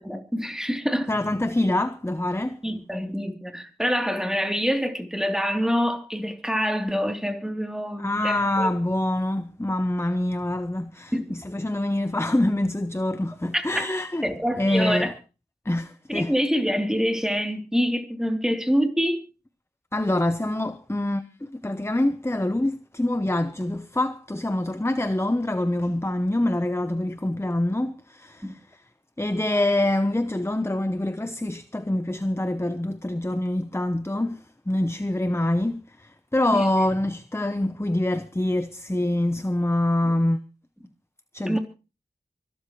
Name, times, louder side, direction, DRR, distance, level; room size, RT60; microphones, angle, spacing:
voice 1, 0.0-1.1 2.6-8.7 11.1-11.2 13.5-13.9 14.2-15.1 16.1-19.2 28.4-28.5 36.5-36.7 41.5-41.6, equal, 5° right, 3.1 m, -26 dB
voice 2, 1.1-2.6 8.0-14.3 14.6-15.1 15.6-16.3 19.9-28.8 29.2-40.4 41.3-41.6, left 1 dB, 15° left, 0.8 m, -25 dB
24.5 x 12.5 x 3.1 m
wide cardioid pair, 45°, 18 cm